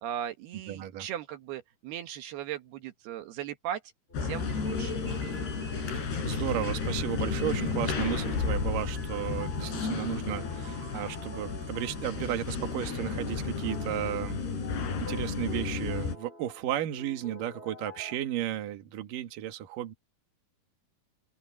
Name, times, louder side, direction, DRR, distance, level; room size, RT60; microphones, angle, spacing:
voice 1, 0.0-3.8 4.2-4.9, right 10 dB, 80° right, 3.4 m, -38 dB
voice 2, 0.7-1.1 5.8-14.5 15.0-19.9, right 12 dB, 65° right, 3.0 m, -34 dB
sound 1, 4.1-16.2, left 5 dB, 90° left, 7.7 m, -32 dB
sound 2, 4.1-12.3 12.6-18.2, left 1 dB, 15° left, 4.5 m, -48 dB
open air
omnidirectional pair, 4.6 m